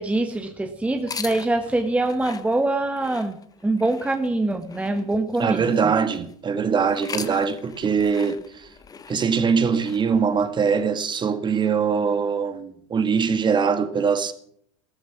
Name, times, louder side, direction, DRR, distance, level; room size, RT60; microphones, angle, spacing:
voice 1, 0.0-3.4 3.6-5.9, right 2 dB, 10° right, 1.4 m, -24 dB
sound 1, 1.0-6.3 6.8-10.9, left 5 dB, 20° left, 1.4 m, -40 dB
voice 2, 5.4-8.7 9.1-14.3, right 6 dB, 30° right, 1.9 m, -22 dB
15.5 x 14.0 x 6.0 m
hypercardioid pair, 100°, 17 cm